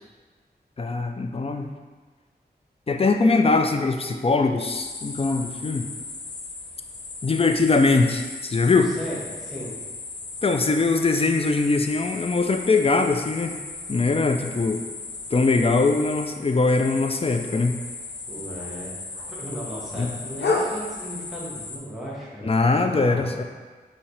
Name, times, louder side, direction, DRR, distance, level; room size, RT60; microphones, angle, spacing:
voice 1, 0.8-1.7 2.9-5.9 7.2-8.9 10.4-13.6 13.9-14.8 15.3-17.8 19.9-20.1 22.4-23.4, left 3 dB, 35° left, 6 dB, 0.4 m, -21 dB
sound 1, 4.7-21.8, left 3 dB, 85° left, 0.5 m, -35 dB
voice 2, 8.8-9.7 18.3-19.0 19.3-23.3, equal, ahead, -7 dB, 1.5 m, -36 dB
5.6 x 2.8 x 3.3 m, 1.4 s
cardioid pair, 45°, 17 cm